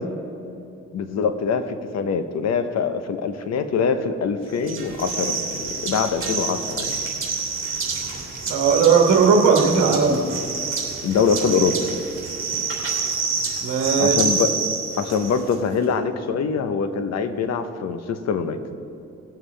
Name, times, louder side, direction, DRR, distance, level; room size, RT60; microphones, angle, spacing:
voice 1, 0.9-7.0 11.0-11.8 14.0-14.5 15.0-18.6, left 6 dB, 60° left, 9 dB, 0.9 m, -24 dB
sound 1, 4.6-15.5, right 5 dB, 45° right, 3.0 m, -27 dB
voice 2, 8.5-10.2 13.6-14.2, right 5 dB, 70° right, 1 dB, 1.5 m, -17 dB
19.0 x 7.4 x 3.4 m, 2.7 s
cardioid pair, 90°, 30 cm